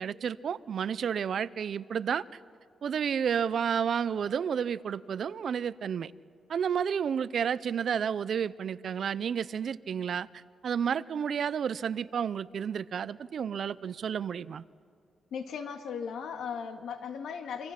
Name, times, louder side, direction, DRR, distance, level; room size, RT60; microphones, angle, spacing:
voice 1, 0.0-2.2 2.8-6.1 6.5-14.6, right 7 dB, 60° right, 18 dB, 0.5 m, -31 dB
voice 2, 15.3-17.7, left 6 dB, 90° left, 6 dB, 1.8 m, -37 dB
28.0 x 25.0 x 5.9 m, 2.2 s
wide cardioid pair, 145°, 0 cm